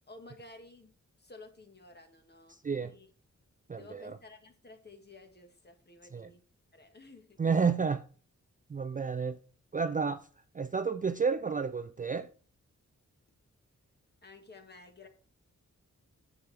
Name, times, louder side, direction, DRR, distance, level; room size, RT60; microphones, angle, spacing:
voice 1, 0.1-3.1 3.7-6.4 6.7-7.4 14.2-15.1, left 2 dB, 35° left, 1.7 m, -53 dB
voice 2, 3.7-4.2 6.1-6.3 7.4-8.0 8.7-9.4 9.7-10.3 10.5-12.3, right 5 dB, 30° right, 0.3 m, -31 dB
10.5 x 7.3 x 3.4 m
wide cardioid pair, 140°, 30 cm